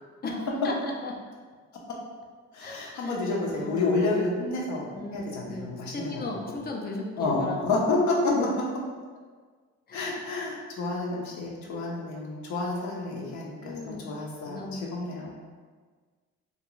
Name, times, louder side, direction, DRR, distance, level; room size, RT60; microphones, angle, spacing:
voice 1, 0.2-1.1 2.6-2.8 3.0-3.2 3.4-4.0 4.9-7.8 8.3-8.5 9.9-10.0 11.4-11.7 13.6-14.0 14.4-15.4, left 2 dB, 30° left, 0 dB, 0.5 m, -37 dB
voice 2, 2.5-6.6 7.2-8.3 9.9-15.3, left 3 dB, 70° left, -2 dB, 0.7 m, -30 dB
2.5 x 2.2 x 3.0 m, 1.5 s
cardioid pair, 90°, 30 cm